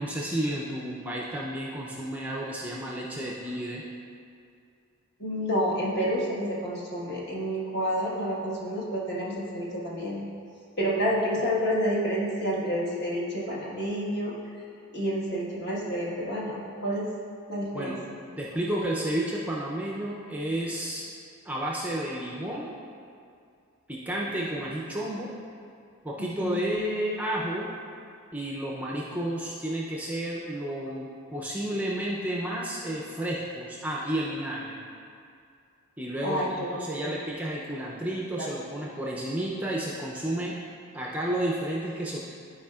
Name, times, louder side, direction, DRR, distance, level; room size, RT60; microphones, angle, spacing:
voice 1, 0.0-3.8 17.7-18.0 18.4-21.1 21.4-22.7 23.9-25.3 26.0-27.7 28.3-34.8 36.0-40.5 40.9-42.2, right 1 dB, 5° right, -4 dB, 0.4 m, -31 dB
voice 2, 5.2-10.3 10.8-14.3 14.9-17.1 17.5-18.0 26.4-26.6 36.2-37.1 38.4-38.5, equal, 45° left, -5 dB, 1.3 m, -29 dB
11.5 x 4.8 x 2.3 m, 2.4 s
head